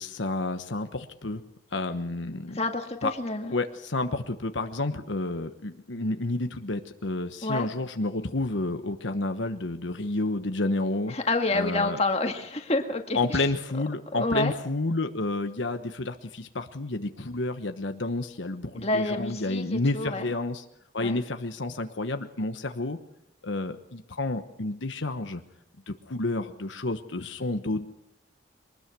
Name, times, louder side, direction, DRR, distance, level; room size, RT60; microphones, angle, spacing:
voice 1, 0.0-1.4 1.7-2.6 3.0-3.1 3.5-11.1 11.5-12.0 13.1-20.6 20.9-23.0 23.4-25.4 25.9-27.9, left 2 dB, 80° left, 7 dB, 1.2 m, -30 dB
voice 2, 2.5-3.5 7.4-7.7 11.1-13.4 14.1-14.5 18.7-20.3 21.0-21.2, left 2 dB, 35° left, 4 dB, 1.9 m, -28 dB
23.5 x 20.0 x 6.1 m, 0.78 s
head